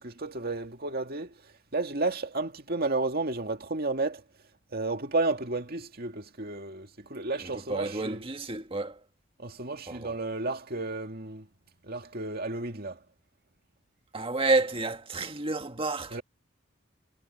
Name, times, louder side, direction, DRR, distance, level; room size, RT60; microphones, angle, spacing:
voice 1, 0.0-1.3 1.7-4.2 4.7-8.2 9.4-11.5 11.8-13.0 16.1-16.2, right 3 dB, 50° right, 2.2 m, -32 dB
voice 2, 7.4-9.0 9.9-10.2 14.1-16.2, right 3 dB, 30° right, 1.7 m, -30 dB
head